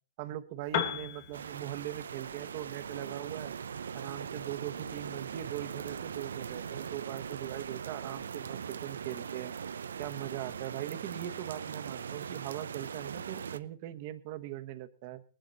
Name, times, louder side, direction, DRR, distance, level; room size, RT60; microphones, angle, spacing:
voice 1, 0.2-3.5 3.9-9.5 10.0-15.2, right 14 dB, 45° right, 10 dB, 1.2 m, -40 dB
Piano, 0.6-8.4, left 8 dB, 50° left, 2.5 m, -43 dB
sound 1, 1.3-13.6, right 7 dB, 85° right, 0.6 m, -40 dB
19.0 x 11.5 x 4.1 m, 0.42 s
hypercardioid pair, 140°, 0 cm